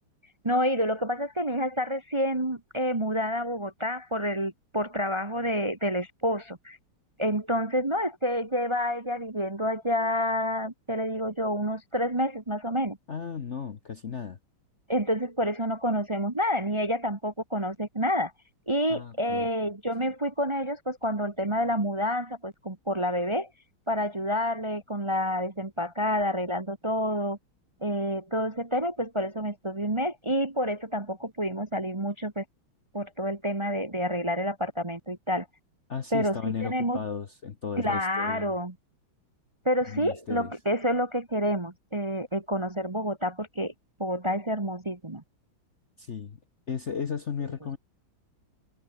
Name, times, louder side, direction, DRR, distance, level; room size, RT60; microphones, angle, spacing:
voice 1, 0.4-6.8 7.2-13.0 14.9-18.3 18.7-23.5 23.9-27.4 27.8-32.4 32.9-35.5 36.1-37.0 37.8-38.7 39.6-43.7 44.0-45.2, equal, 20° right, 1.1 m, -28 dB
voice 2, 13.1-14.4 18.9-19.5 35.9-38.5 39.9-40.5 46.0-46.4 46.7-47.8, left 6 dB, 45° left, 1.1 m, -35 dB
omnidirectional pair, 2.3 m